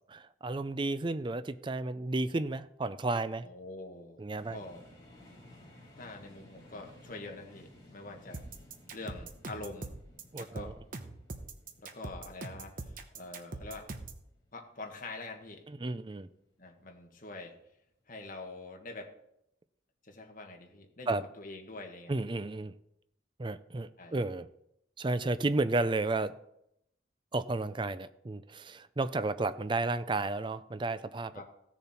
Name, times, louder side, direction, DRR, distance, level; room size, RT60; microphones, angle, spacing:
voice 1, 0.1-3.5 4.2-4.6 10.3-10.7 15.7-16.3 21.1-21.2 22.1-22.7 23.4-24.5 25.0-26.3 27.3-31.3, right 2 dB, 25° right, 0.5 m, -32 dB
voice 2, 3.4-4.2 4.5-4.8 6.0-8.4 8.9-10.0 10.4-10.8 11.8-13.9 14.5-15.6 16.6-17.6 18.1-19.1 20.0-22.1 24.0-24.2 31.3-31.5, left 2 dB, 45° left, 1.7 m, -45 dB
sound 1, 4.3-16.1, left 1 dB, 20° left, 3.9 m, -57 dB
sound 2, 8.3-14.2, right 2 dB, 50° right, 1.0 m, -42 dB
16.0 x 6.9 x 4.4 m
head